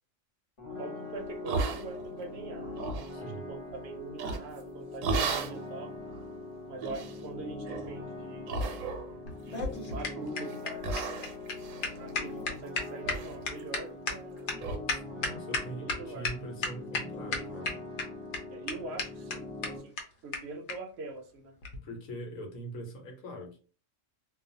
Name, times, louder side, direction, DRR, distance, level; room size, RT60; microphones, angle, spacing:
sound 1, 0.6-19.8, left 2 dB, 30° left, 0.7 m, -42 dB
voice 1, 0.8-2.8 3.2-6.0 6.7-8.7 9.4-11.2 12.0-14.5 15.8-16.4 18.5-20.0 20.2-21.5, right 3 dB, 65° right, 4 dB, 0.8 m, -43 dB
sound 2, 1.5-2.2 2.6-3.1 4.2-4.6 5.0-5.6 6.1-6.2 6.8-7.2 7.6-7.9 8.5-9.2 9.5-10.0 10.4-10.6 10.8-12.7 13.0-13.3 13.6-13.7 14.1-14.2 14.6-14.8, right 3 dB, 85° right, 1.0 m, -34 dB
voice 2, 3.1-3.5 14.9-17.8 21.8-23.6, right 1 dB, 85° left, 3 dB, 1.2 m, -42 dB
sound 3, 9.3-16.0 16.2-16.3 16.6-17.0 17.3-18.0 18.3-18.4 18.7-18.8 19.0-19.1 19.3-19.4 19.6-19.7 20.0-20.1 20.3-20.4 20.7-20.8 21.6-21.8, left 4 dB, 65° left, 0.9 m, -32 dB
2.3 x 2.3 x 2.6 m, 0.38 s
omnidirectional pair, 1.4 m